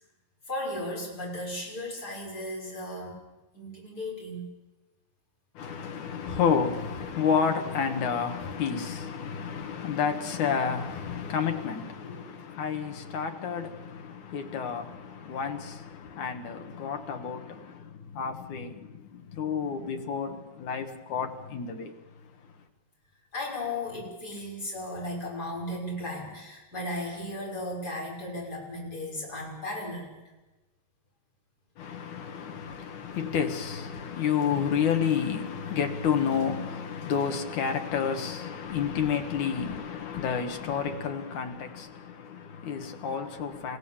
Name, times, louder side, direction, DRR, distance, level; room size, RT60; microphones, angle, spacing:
voice 1, 0.5-3.3 3.5-4.5 12.0-12.3 23.3-30.1 32.3-32.5, left 1 dB, 25° left, 6.2 m, -36 dB
voice 2, 5.6-21.9 31.8-43.8, left 7 dB, 60° left, 2.6 m, -30 dB
30.0 x 16.0 x 7.3 m
omnidirectional pair, 4.6 m